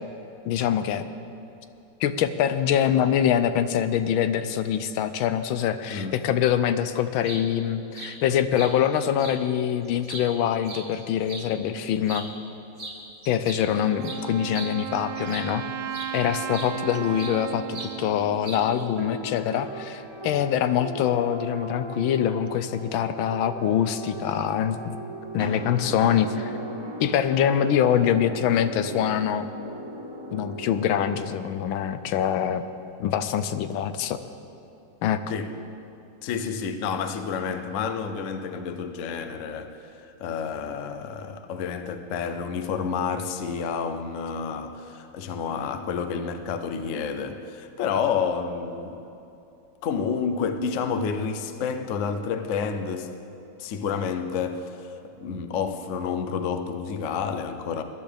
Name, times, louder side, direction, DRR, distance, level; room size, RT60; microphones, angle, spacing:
voice 1, 0.5-1.0 2.0-12.3 13.3-15.6 16.1-25.0 25.3-26.5 27.0-29.5 30.3-32.6 33.0-34.2 35.0-35.2, left 9 dB, 90° left, 11 dB, 1.4 m, -24 dB
voice 2, 5.9-6.3 35.3-35.5 36.2-49.1 49.8-53.1 53.6-54.9 55.2-57.8, left 6 dB, 65° left, 8 dB, 0.8 m, -29 dB
sound 1, 7.2-7.4 7.9-8.1 8.5-8.7 9.2-9.4 9.8-11.5 12.0-12.3 12.8-13.0 13.2-15.6 15.9-16.1 16.5-17.4 17.7-17.9 18.4-18.8, right 2 dB, 35° right, 1.5 m, -39 dB
Wind instrument woodwind instrument, 13.7-19.4, right 10 dB, 75° right, 0.9 m, -35 dB
sound 2, 18.6-31.1, right 1 dB, 15° right, 1.5 m, -38 dB
20.5 x 12.0 x 3.4 m, 2.8 s
omnidirectional pair, 2.1 m